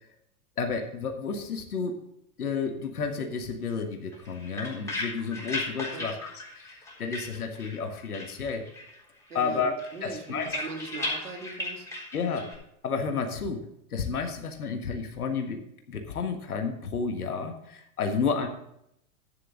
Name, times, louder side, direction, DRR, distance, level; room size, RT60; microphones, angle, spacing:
voice 1, 0.6-2.0 2.4-8.6 9.3-10.5 12.1-12.5 12.8-13.6 13.9-15.6 15.9-18.5, left 5 dB, 80° left, 5 dB, 1.7 m, -31 dB
sound 1, 4.1-7.9 8.1-9.0 9.3-12.5, left 2 dB, 5° left, 3.8 m, -36 dB
voice 2, 5.9-6.2 9.3-11.9 18.1-18.4, right 3 dB, 85° right, 3 dB, 2.4 m, -40 dB
11.5 x 9.6 x 3.9 m, 0.75 s
hypercardioid pair, 95°, 44 cm